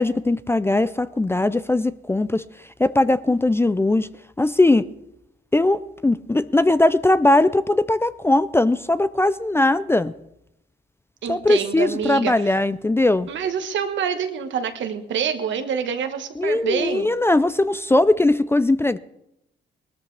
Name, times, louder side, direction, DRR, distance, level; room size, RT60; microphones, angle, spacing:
voice 1, 0.0-2.4 2.8-4.1 4.4-4.9 5.5-10.1 11.3-13.3 16.4-19.0, left 2 dB, 10° left, 14 dB, 0.4 m, -19 dB
voice 2, 11.2-12.3 13.3-17.1, right 7 dB, 70° right, 7 dB, 1.4 m, -26 dB
19.0 x 13.0 x 3.4 m, 0.82 s
cardioid pair, 90°, 20 cm